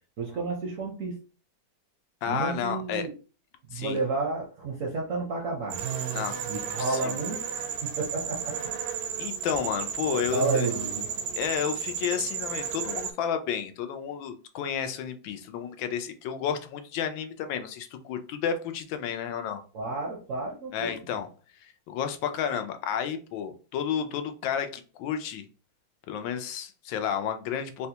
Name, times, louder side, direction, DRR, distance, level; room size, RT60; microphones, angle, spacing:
voice 1, 0.2-1.2 2.3-3.1 3.7-5.8 6.5-7.5 7.8-8.6 9.4-9.5 10.0-11.1 19.7-20.9, right 3 dB, 65° right, -1 dB, 0.8 m, -31 dB
voice 2, 2.2-3.1 3.7-4.0 6.1-6.4 6.7-7.2 9.2-10.7 11.3-19.6 20.7-21.3 21.6-25.4 26.1-27.9, left 8 dB, 90° left, 8 dB, 1.3 m, -31 dB
sound 1, 5.7-13.1, right 7 dB, 80° right, 1.3 m, -33 dB
4.0 x 2.2 x 2.8 m, 0.36 s
omnidirectional pair, 2.0 m